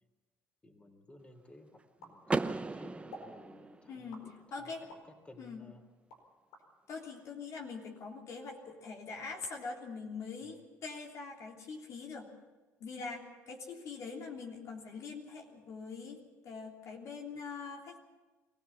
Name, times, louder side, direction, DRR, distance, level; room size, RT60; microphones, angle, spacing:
voice 1, 0.6-5.8 10.4-10.6, left 1 dB, 20° left, 6 dB, 3.3 m, -57 dB
sound 1, 2.0-2.7 3.1-3.4 4.1-5.1 5.6-6.7, left 1 dB, 85° left, 4.6 m, -52 dB
Car / Door, 2.3-4.2, right 3 dB, 20° right, 0.9 m, -36 dB
voice 2, 3.9-4.8 5.4-5.7 6.9-12.3 12.8-18.0, left 4 dB, 60° left, 1 dB, 3.2 m, -43 dB
23.5 x 16.0 x 7.2 m, 1.2 s
supercardioid pair, 80°, 6 cm